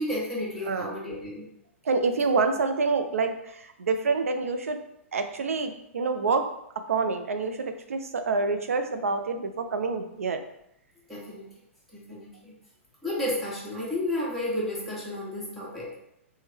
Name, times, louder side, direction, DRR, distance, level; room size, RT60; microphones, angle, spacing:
voice 1, 0.0-1.4 11.1-11.5 11.9-12.5 13.0-16.0, left 1 dB, ahead, -8 dB, 1.2 m, -32 dB
voice 2, 1.9-4.8 5.1-6.4 6.9-10.4, right 4 dB, 85° right, 7 dB, 0.4 m, -27 dB
3.4 x 2.1 x 3.2 m, 0.77 s
hypercardioid pair, 120°, 7 cm